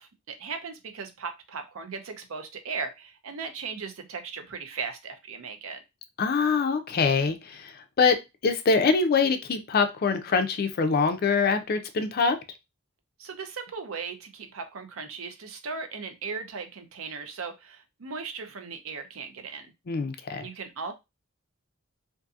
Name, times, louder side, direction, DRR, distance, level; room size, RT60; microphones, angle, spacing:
voice 1, 0.0-5.8 13.2-19.7 20.4-20.9, right 5 dB, 70° right, 7 dB, 0.5 m, -37 dB
voice 2, 6.2-8.2 8.4-12.4 19.9-20.5, left 4 dB, 45° left, 9 dB, 0.4 m, -24 dB
2.6 x 2.5 x 2.4 m, 0.23 s
head